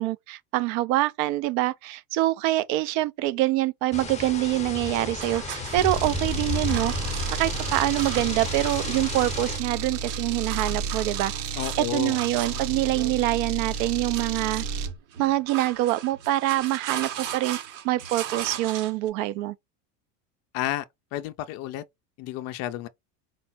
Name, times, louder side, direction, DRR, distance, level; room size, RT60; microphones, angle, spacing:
voice 1, 0.0-6.9 7.3-14.6 15.2-17.6 17.8-19.5, right 16 dB, 50° right, 0.6 m, -25 dB
sound 1, 3.9-9.6, left 4 dB, 15° left, 0.8 m, -33 dB
sound 2, 5.2-19.1, right 9 dB, 85° right, 1.8 m, -38 dB
sound 3, 5.8-15.0, right 5 dB, 65° right, 1.4 m, -32 dB
voice 2, 11.6-12.2 20.5-20.8 21.1-21.8 22.2-22.9, left 14 dB, 35° left, 0.4 m, -31 dB
4.6 x 2.0 x 4.3 m
supercardioid pair, 130°, 48 cm